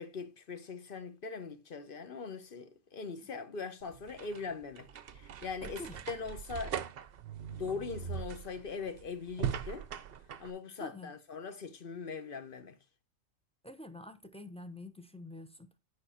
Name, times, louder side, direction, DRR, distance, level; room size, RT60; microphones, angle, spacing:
voice 1, 0.0-4.9 5.1-6.8 7.5-9.9 10.4-12.8, left 5 dB, 45° left, 1.0 m, -41 dB
sound 1, 3.8-10.5, right 8 dB, 55° right, 0.7 m, -40 dB
voice 2, 5.6-6.0 10.8-11.1 13.6-15.7, left 1 dB, 5° left, 0.6 m, -47 dB
9.7 x 5.3 x 4.3 m
omnidirectional pair, 1.4 m